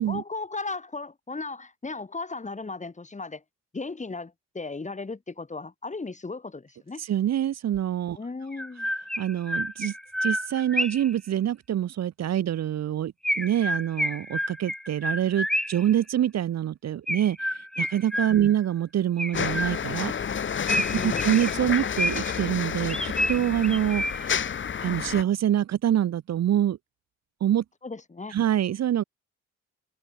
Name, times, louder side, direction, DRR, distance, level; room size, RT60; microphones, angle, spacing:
voice 1, 0.1-3.4 3.7-7.0 8.2-8.9 18.4-18.5 20.9-21.3 27.8-28.4, left 3 dB, 25° left, 7.8 m, -36 dB
voice 2, 7.0-8.2 9.2-9.9 10.2-20.1 20.7-24.3 24.8-26.8 27.4-27.6 28.3-29.0, right 11 dB, 60° right, 1.2 m, -26 dB
Chirp tweet, 7.7-7.8 8.5-11.1 13.2-15.9 17.1-18.6 19.2-20.1 20.7-22.4 22.9-24.4, equal, ahead, 1.0 m, -30 dB
sound 1, 19.3-25.2, left 7 dB, 40° left, 1.3 m, -30 dB
cardioid pair, 90°, 30 cm